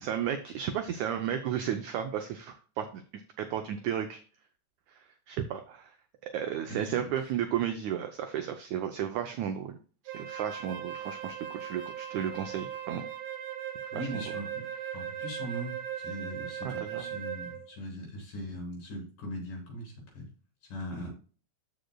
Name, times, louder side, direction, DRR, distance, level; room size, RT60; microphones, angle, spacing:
voice 1, 0.0-3.0 3.4-4.2 4.9-6.0 6.2-9.8 10.1-13.1 13.9-14.2 16.6-17.1, right 9 dB, 90° right, 7 dB, 1.6 m, -33 dB
voice 2, 6.7-7.1 13.9-14.7 14.9-20.3 20.7-21.1, equal, 65° left, -1 dB, 5.1 m, -40 dB
Wind instrument woodwind instrument, 10.1-17.7, right 9 dB, 70° right, 2.1 m, -39 dB
13.0 x 5.2 x 2.3 m, 0.39 s
omnidirectional pair, 4.2 m